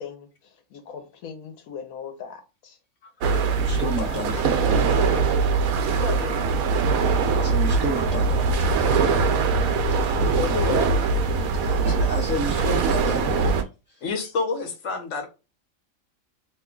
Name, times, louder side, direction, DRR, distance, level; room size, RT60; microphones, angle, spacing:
voice 1, 0.0-2.8 3.4-5.2 6.0-6.5 10.2-10.9, left 7 dB, 85° left, 1.2 m, -35 dB
sound 1, 3.2-13.6, right 4 dB, 90° right, 1.0 m, -22 dB
voice 2, 3.5-4.4 7.3-8.4 11.6-13.4 13.9-14.0, equal, 40° left, 1.2 m, -31 dB
voice 3, 14.0-15.3, left 4 dB, 65° left, 1.3 m, -28 dB
3.0 x 2.2 x 3.6 m
omnidirectional pair, 1.4 m